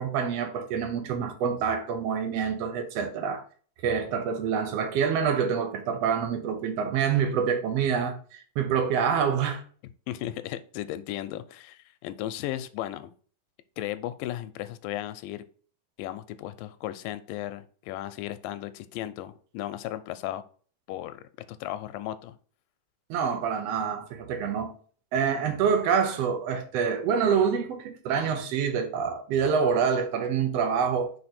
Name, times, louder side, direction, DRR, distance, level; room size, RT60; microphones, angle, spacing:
voice 1, 0.0-3.4 3.8-9.6 23.1-24.7 25.1-31.1, right 6 dB, 65° right, 1.7 m, -26 dB
voice 2, 10.1-13.1 13.8-15.4 16.0-20.4 20.9-22.4, left 13 dB, 85° left, 2.2 m, -35 dB
5.2 x 4.4 x 4.2 m
omnidirectional pair, 3.9 m